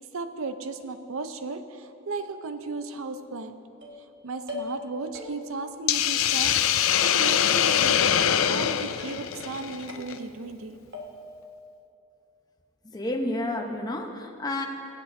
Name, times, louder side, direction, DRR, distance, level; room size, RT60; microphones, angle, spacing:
voice 1, 0.1-3.6 4.2-10.8, right 3 dB, 85° right, 9 dB, 0.6 m, -35 dB
sound 1, 3.8-4.1 4.5-4.9 5.1-5.7 6.2-6.8 7.1-7.8 8.1-8.6 9.0-9.5 9.9-10.6 10.9-11.5, left 2 dB, 55° right, 1.4 m, -42 dB
Hiss, 5.9-10.1, left 9 dB, 80° left, 0.4 m, -23 dB
voice 2, 12.9-14.7, left 1 dB, 20° left, 3 dB, 0.8 m, -30 dB
23.5 x 8.1 x 2.7 m, 2.8 s
head